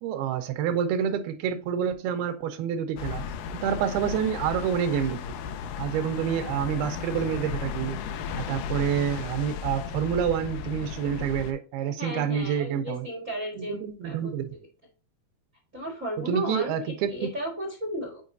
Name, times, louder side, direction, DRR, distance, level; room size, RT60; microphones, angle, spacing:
voice 1, 0.0-3.3 3.5-5.2 5.8-8.0 8.4-13.1 13.6-14.4 16.3-17.3, right 8 dB, 85° right, 2.7 m, -28 dB
sound 1, 3.0-11.5, left 7 dB, 80° left, 1.9 m, -35 dB
voice 2, 12.0-14.6 15.7-18.2, equal, 55° right, 0.8 m, -35 dB
8.3 x 4.7 x 2.6 m
omnidirectional pair, 4.4 m